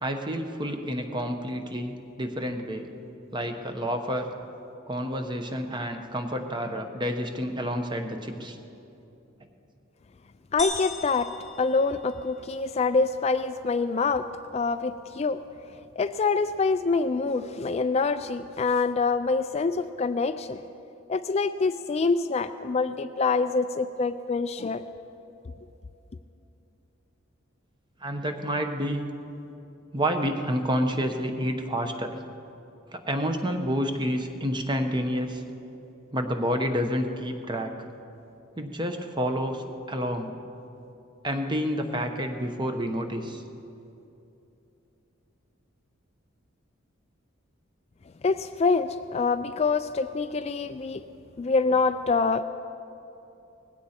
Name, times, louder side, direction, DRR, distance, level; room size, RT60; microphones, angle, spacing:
voice 1, 0.0-2.9 3.3-4.3 4.9-8.6 28.0-29.1 29.9-32.1 32.9-35.4 36.1-37.7 38.6-40.3 41.2-43.4, equal, 20° right, 5 dB, 1.0 m, -29 dB
voice 2, 10.5-11.3 11.6-14.3 14.5-15.4 16.0-20.6 21.1-24.8 48.2-51.0 51.4-52.4, left 4 dB, 30° left, 10 dB, 0.3 m, -25 dB
sound 1, 10.6-12.5, left 2 dB, ahead, 1.3 m, -37 dB
19.5 x 16.0 x 4.4 m, 2.9 s
head